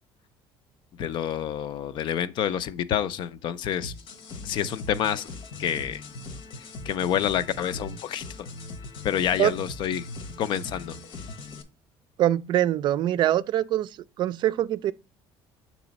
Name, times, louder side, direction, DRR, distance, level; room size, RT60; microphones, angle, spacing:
voice 1, 1.0-3.9 4.4-5.3 5.6-6.0 6.9-8.2 9.0-10.1 10.4-11.0, left 10 dB, 55° left, 0.5 m, -28 dB
sound 1, 3.8-11.6, left 2 dB, 70° left, 1.1 m, -40 dB
voice 2, 12.2-13.9 14.2-14.9, right 12 dB, 55° right, 0.4 m, -23 dB
6.8 x 3.0 x 5.1 m
cardioid pair, 115°, 9 cm